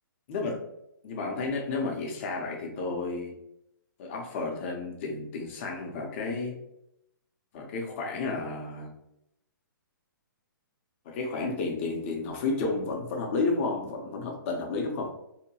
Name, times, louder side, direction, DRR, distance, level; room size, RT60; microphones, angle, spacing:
voice 1, 0.3-0.6 1.0-3.4 4.0-6.5 7.5-8.9 11.0-15.1, left 3 dB, 35° left, 1 dB, 0.6 m, -31 dB
2.8 x 2.2 x 2.8 m, 0.81 s
hypercardioid pair, 150°, 11 cm